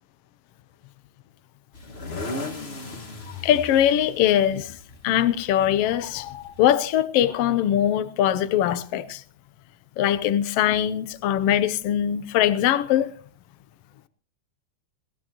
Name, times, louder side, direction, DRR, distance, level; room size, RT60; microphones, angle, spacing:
sound 1, 1.7-6.7, left 2 dB, 35° left, 1.0 m, -37 dB
voice 1, 3.4-4.8 5.0-9.2 10.0-13.1, left 11 dB, 70° left, 1.6 m, -22 dB
21.5 x 18.0 x 2.9 m
omnidirectional pair, 3.4 m